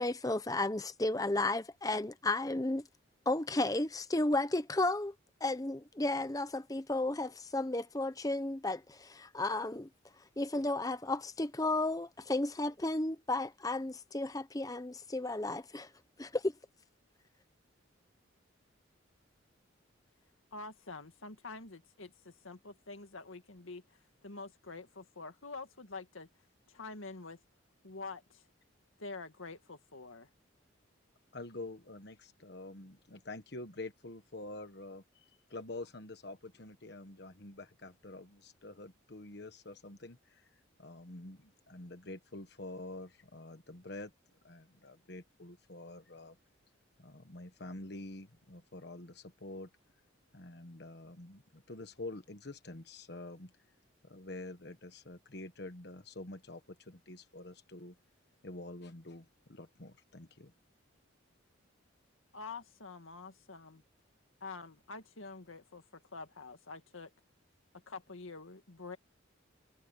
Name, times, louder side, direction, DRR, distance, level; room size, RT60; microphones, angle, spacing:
voice 1, 0.0-2.8 3.3-5.1 5.4-9.9 10.4-15.9 16.2-16.5, left 2 dB, 20° left, 0.8 m, -33 dB
voice 2, 20.5-23.8 24.2-26.3 26.7-27.4 27.8-28.4 29.0-30.3 62.3-63.8 64.4-67.1 67.9-69.0, left 3 dB, 85° left, 2.1 m, -47 dB
voice 3, 31.3-40.5 40.8-44.1 44.4-46.4 47.0-49.7 50.3-53.5 54.0-57.9 58.4-60.5, left 2 dB, 55° left, 1.3 m, -47 dB
head